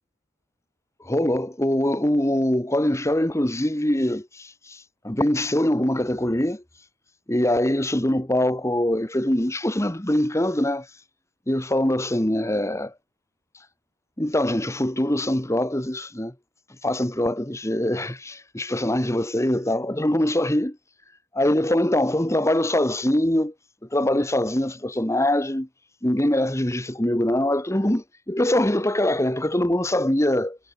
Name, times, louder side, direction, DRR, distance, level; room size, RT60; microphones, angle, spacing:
voice 1, 1.0-6.6 7.3-10.9 11.5-12.9 14.2-16.3 16.8-20.8 21.3-23.5 23.9-25.7 26.0-30.6, left 1 dB, 15° left, 1.5 m, -23 dB
head